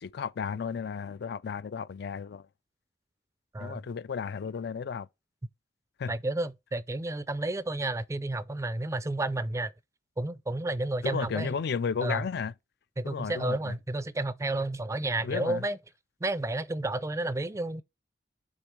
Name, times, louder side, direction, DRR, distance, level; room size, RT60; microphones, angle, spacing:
voice 1, 0.0-2.4 3.6-5.1 6.0-6.1 11.0-12.5 13.0-13.7 15.2-15.6, left 6 dB, 65° left, 0.4 m, -33 dB
voice 2, 6.1-9.7 10.2-11.5 12.0-12.3 13.0-15.8 16.2-17.8, right 2 dB, 15° right, 0.4 m, -31 dB
6.4 x 3.7 x 6.0 m
head